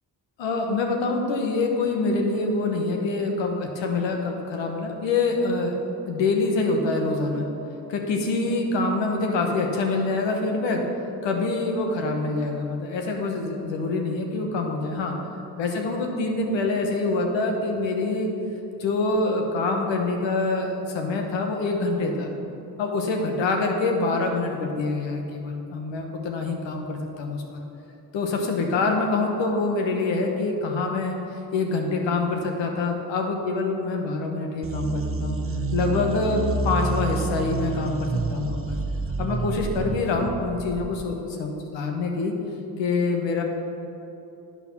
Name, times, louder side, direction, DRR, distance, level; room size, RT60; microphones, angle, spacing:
voice 1, 0.4-5.7 6.1-7.5 7.9-10.8 11.2-15.1 15.6-18.3 18.8-22.3 22.8-27.6 28.1-31.2 31.5-35.4 35.7-38.8 39.2-42.3 42.8-43.4, left 3 dB, 85° left, 2 dB, 1.1 m, -25 dB
sound 1, 34.6-41.1, right 3 dB, 30° right, 0.8 m, -29 dB
8.6 x 5.7 x 5.8 m, 2.9 s
supercardioid pair, 45°, 44 cm